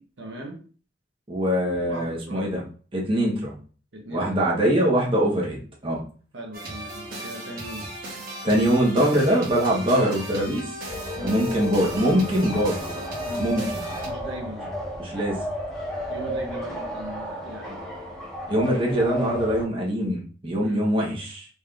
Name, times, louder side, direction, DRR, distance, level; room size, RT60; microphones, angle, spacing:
voice 1, 0.2-0.6 1.6-2.5 3.9-4.6 6.3-7.9 11.2-11.4 13.2-14.7 16.1-17.8 20.6-20.9, equal, 80° right, 0 dB, 1.0 m, -38 dB
voice 2, 1.3-2.6 2.9-3.5 4.1-5.6 5.8-6.0 8.4-10.6 11.2-12.8 13.4-13.8 15.0-15.4 18.5-21.5, equal, 30° right, -3 dB, 1.1 m, -23 dB
sound 1, 6.5-14.1, right 1 dB, 50° right, 1.4 m, -37 dB
sound 2, 10.9-19.6, left 1 dB, ahead, 1.1 m, -33 dB
4.1 x 3.4 x 2.5 m, 0.40 s
head